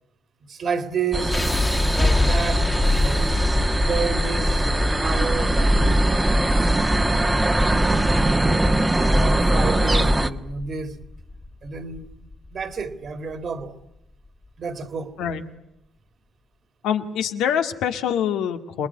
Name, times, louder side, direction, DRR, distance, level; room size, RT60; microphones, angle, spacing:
voice 1, 0.5-1.4 1.9-3.3 3.7-7.0 8.9-11.0 11.6-12.1 12.5-13.7 14.6-15.1, right 5 dB, 50° right, 2.7 m, -30 dB
sound 1, 1.1-10.3, right 1 dB, 15° right, 1.3 m, -21 dB
sound 2, 1.3-13.3, left 2 dB, 20° left, 1.9 m, -26 dB
voice 2, 16.8-18.9, left 9 dB, 90° left, 1.9 m, -25 dB
27.5 x 20.0 x 9.8 m
cardioid pair, 90°, 0 cm